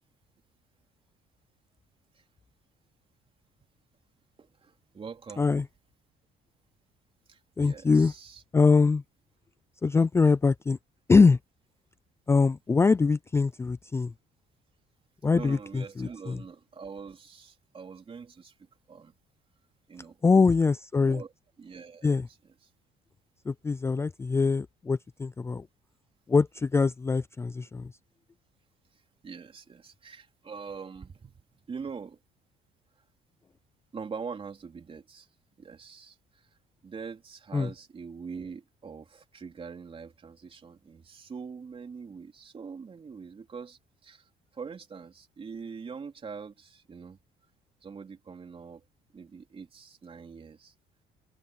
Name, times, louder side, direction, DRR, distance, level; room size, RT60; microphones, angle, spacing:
voice 1, 4.4-5.5 7.3-8.4 15.3-18.5 18.9-19.1 19.9-20.2 21.0-21.3 21.6-22.2 29.2-31.4 31.7-32.2 33.9-35.3 35.6-36.2 36.8-44.2 44.5-47.2 47.8-48.8 49.1-50.7, right 5 dB, 30° right, 3.5 m, -43 dB
voice 2, 7.6-8.1 8.5-9.0 9.8-10.8 11.1-11.4 12.3-14.1 15.2-16.4 20.2-21.2 22.0-22.3 23.5-25.6 26.3-27.9 37.5-37.7, left 4 dB, 15° left, 0.4 m, -23 dB
open air
cardioid pair, 110°, 17 cm